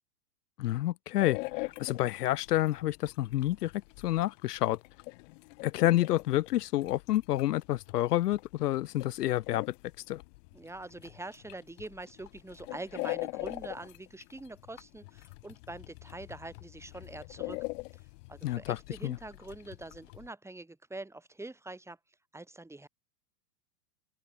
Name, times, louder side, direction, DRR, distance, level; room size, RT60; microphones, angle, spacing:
voice 1, 0.6-3.7 4.0-4.8 5.6-9.7 10.1-10.2 18.4-19.2, left 15 dB, 75° left, 0.7 m, -29 dB
sound 1, 1.2-20.3, left 25 dB, 50° left, 2.3 m, -43 dB
voice 2, 10.5-17.6 17.9-22.0 22.3-22.9, right 2 dB, 5° right, 6.3 m, -44 dB
open air
hypercardioid pair, 115°, 47 cm